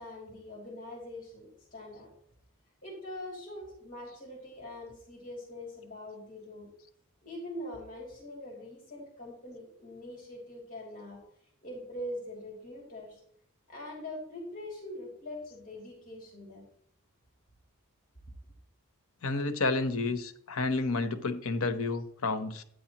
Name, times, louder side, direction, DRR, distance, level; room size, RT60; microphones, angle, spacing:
voice 1, 0.0-2.1 2.8-6.7 7.2-11.2 11.6-13.2 13.7-16.7, left 1 dB, 40° left, -2 dB, 2.6 m, -43 dB
voice 2, 19.2-22.6, left 3 dB, 65° left, 9 dB, 1.0 m, -30 dB
12.5 x 9.3 x 2.9 m, 0.66 s
head